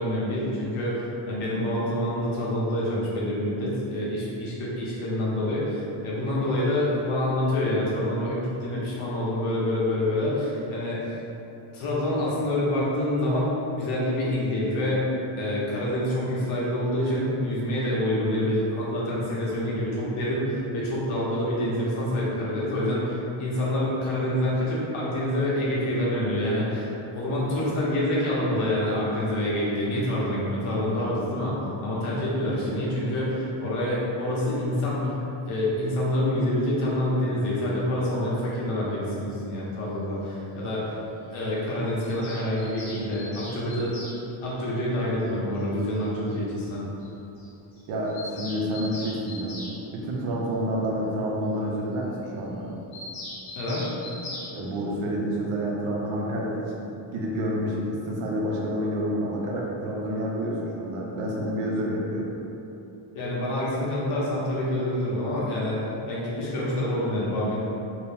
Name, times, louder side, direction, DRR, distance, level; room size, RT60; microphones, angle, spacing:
voice 1, 0.0-11.2 11.7-15.1 15.3-31.5 31.8-35.2 35.5-41.0 41.3-43.9 44.4-46.8 53.5-53.9 63.1-67.6, left 1 dB, 85° left, -6 dB, 1.2 m, -27 dB
Bird vocalization bird call bird song, 42.0-44.2 45.6-45.7 45.9-46.0 46.3-46.4 46.7-46.8 47.0-47.1 47.4-47.5 47.8-49.7 52.9-54.5, left 1 dB, 55° left, 1.2 m, -40 dB
voice 2, 47.9-49.6 49.9-52.7 54.5-56.7 57.1-62.3, equal, 85° right, -3 dB, 0.9 m, -28 dB
3.0 x 3.0 x 3.4 m, 2.9 s
cardioid pair, 170°, 48 cm